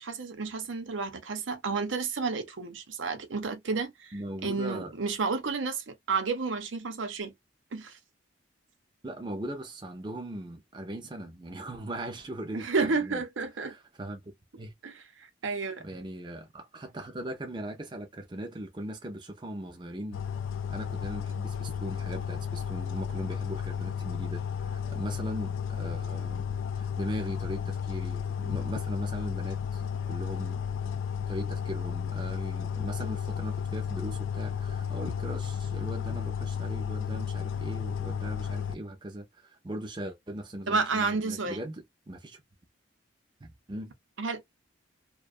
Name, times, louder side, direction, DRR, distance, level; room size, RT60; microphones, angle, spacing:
voice 1, 0.0-4.1 4.4-7.3 7.7-8.0 12.5-13.7 14.8-15.8 40.7-41.6 44.2-44.4, right 4 dB, 75° right, 0.7 m, -31 dB
voice 2, 4.1-4.9 9.0-13.2 13.6-14.7 15.8-20.2 20.7-26.5 26.7-31.0 31.3-42.4 43.4-43.9, right 1 dB, 25° right, 0.5 m, -39 dB
sound 1, 20.1-38.8, left 7 dB, 80° left, 0.3 m, -33 dB
2.4 x 2.3 x 2.4 m
head